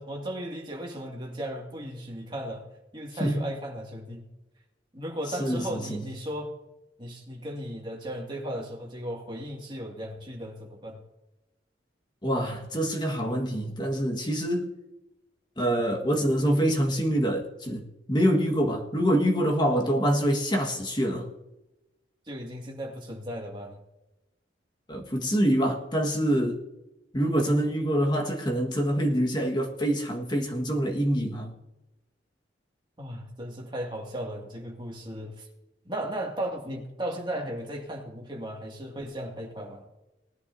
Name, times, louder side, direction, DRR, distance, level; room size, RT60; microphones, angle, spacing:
voice 1, 0.0-2.7 2.9-4.2 4.9-6.5 7.0-11.0 22.3-23.8 33.0-35.5 35.8-39.8, right 1 dB, 25° right, 0 dB, 2.2 m, -36 dB
voice 2, 5.4-6.0 12.2-14.7 15.6-21.3 24.9-26.6 27.1-31.5, equal, 25° left, 1 dB, 1.6 m, -25 dB
19.5 x 11.0 x 2.7 m, 0.96 s
head